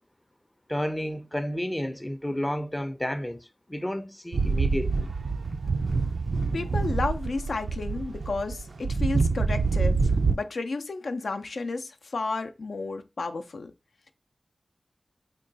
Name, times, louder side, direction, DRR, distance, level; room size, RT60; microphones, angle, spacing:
voice 1, 0.7-5.1, equal, 15° left, 0.5 m, -31 dB
sound 1, 4.3-10.4, right 4 dB, 80° right, 0.4 m, -26 dB
voice 2, 6.5-13.7, left 3 dB, 80° left, 0.5 m, -32 dB
3.7 x 2.3 x 3.8 m
wide cardioid pair, 60°, 0 cm